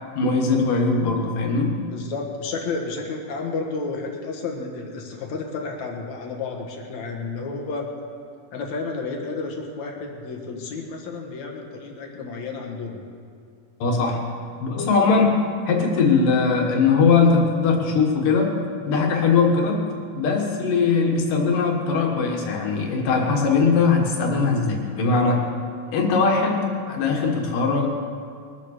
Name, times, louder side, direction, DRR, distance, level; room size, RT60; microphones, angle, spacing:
voice 1, 0.2-1.8 13.8-14.2 14.6-18.5 18.9-19.8 20.2-25.4 25.9-27.9, left 4 dB, 85° left, 1 dB, 3.4 m, -20 dB
voice 2, 1.9-7.8 8.5-13.0, left 4 dB, 65° left, 1 dB, 2.6 m, -31 dB
22.5 x 7.6 x 6.7 m, 2.4 s
omnidirectional pair, 3.6 m